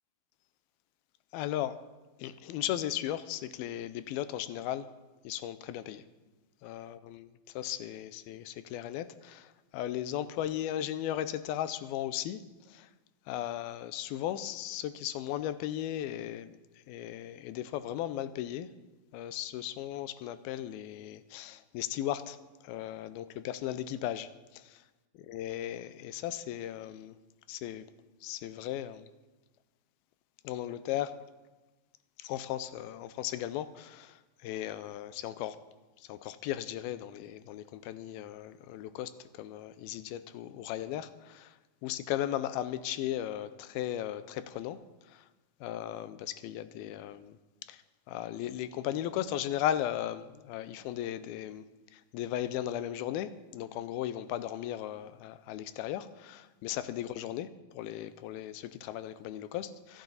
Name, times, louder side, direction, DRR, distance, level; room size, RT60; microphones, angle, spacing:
voice 1, 1.3-1.8 2.2-4.9 5.2-6.0 6.6-12.9 13.3-16.6 16.9-18.7 19.1-22.4 22.6-24.8 25.3-27.2 27.5-27.9 28.2-29.1 30.4-31.2 32.2-35.6 36.0-45.3 45.6-47.4 47.6-47.8 48.1-51.7 51.9-60.0, left 12 dB, 85° left, 13 dB, 2.5 m, -36 dB
26.5 x 8.8 x 4.0 m, 1.2 s
omnidirectional pair, 4.3 m